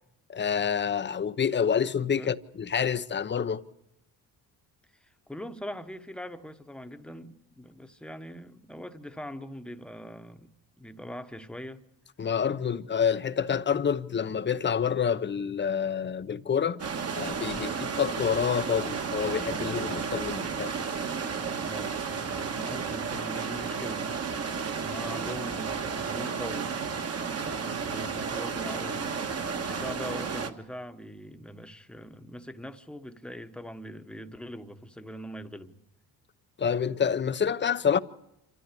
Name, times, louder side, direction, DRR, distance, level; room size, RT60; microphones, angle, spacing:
voice 1, 0.3-3.6 12.2-16.8 17.1-17.7 18.0-20.7 36.6-38.0, left 7 dB, 30° left, 0.7 m, -27 dB
voice 2, 2.0-2.3 4.9-10.5 10.8-11.8 17.5-17.8 21.5-24.1 24.7-26.7 27.3-35.8, equal, ahead, 1.1 m, -42 dB
sound 1, 16.8-30.5, right 5 dB, 40° right, 1.5 m, -32 dB
26.5 x 13.5 x 9.8 m
cardioid pair, 135°, 39 cm